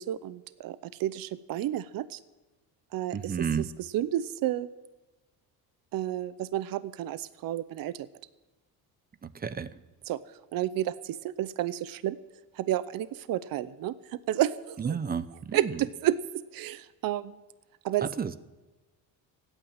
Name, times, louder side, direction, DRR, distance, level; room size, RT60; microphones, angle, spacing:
voice 1, 0.0-2.2 2.9-3.7 3.9-4.7 5.9-8.1 10.1-12.2 12.5-15.0 15.5-17.4 17.8-18.1, right 12 dB, 60° right, 16 dB, 0.7 m, -31 dB
voice 2, 3.1-3.7 9.2-9.7 14.8-15.7 18.0-18.4, right 6 dB, 25° right, 15 dB, 0.7 m, -31 dB
16.5 x 9.1 x 8.9 m, 1.2 s
cardioid pair, 130°, 39 cm